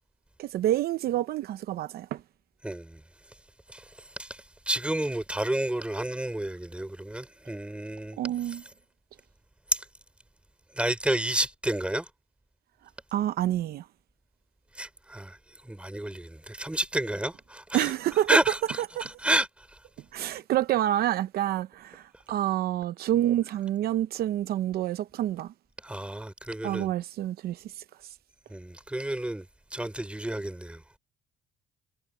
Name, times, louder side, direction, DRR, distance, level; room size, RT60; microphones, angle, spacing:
voice 1, 0.4-2.2 8.2-8.6 13.1-13.9 17.7-18.3 19.0-19.1 20.1-25.5 26.6-28.1, right 13 dB, 65° right, 0.8 m, -28 dB
voice 2, 2.6-3.0 3.7-8.2 8.5-8.6 9.7-9.9 10.7-12.1 14.7-15.4 15.6-17.9 18.3-19.7 25.8-26.9 28.5-29.5 29.7-30.8, right 1 dB, 5° right, 3.7 m, -30 dB
cardioid pair, 110°, 17 cm